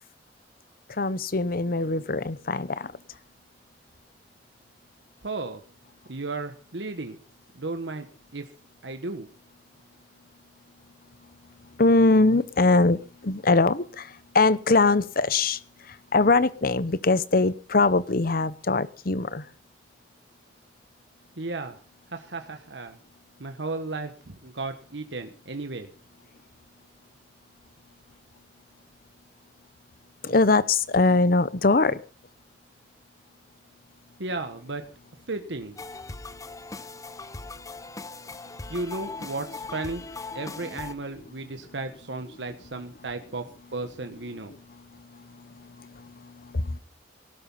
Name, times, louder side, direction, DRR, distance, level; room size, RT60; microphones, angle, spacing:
voice 1, 1.0-2.9 11.8-15.6 15.9-19.4 30.2-32.0 45.2-46.8, left 3 dB, 55° left, 0.9 m, -22 dB
voice 2, 5.2-5.6 6.1-7.2 7.5-8.1 8.3-8.5 8.8-9.3 21.4-21.8 22.1-23.0 23.4-25.9 34.2-34.8 35.3-35.8 38.7-40.0 40.3-44.5, right 3 dB, 90° right, 1.4 m, -34 dB
sound 1, 35.8-40.9, left 3 dB, 20° left, 0.7 m, -39 dB
18.0 x 12.0 x 5.6 m
head